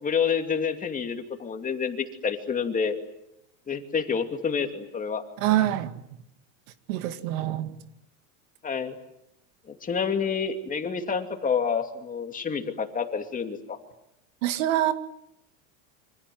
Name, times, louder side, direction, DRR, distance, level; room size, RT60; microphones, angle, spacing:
voice 1, 0.0-3.0 3.7-5.2 8.6-8.9 9.7-13.8, left 6 dB, 20° left, 2.7 m, -28 dB
voice 2, 5.4-6.0 6.9-7.7 14.4-14.9, right 13 dB, 75° right, 2.3 m, -25 dB
28.0 x 25.5 x 7.8 m
supercardioid pair, 145°, 40 cm